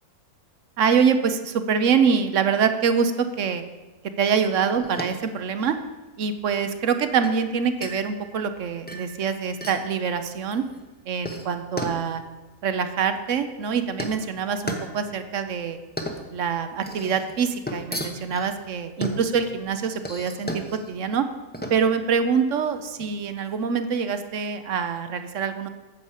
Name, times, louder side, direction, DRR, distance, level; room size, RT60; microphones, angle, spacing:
voice 1, 0.8-3.6 4.2-5.8 6.2-10.6 11.1-12.2 12.6-15.8 16.3-21.3 21.7-25.7, right 6 dB, 60° right, 9 dB, 1.0 m, -25 dB
sound 1, 4.8-23.6, equal, 10° left, 0.8 m, -37 dB
9.3 x 6.8 x 7.3 m, 1.2 s
omnidirectional pair, 1.6 m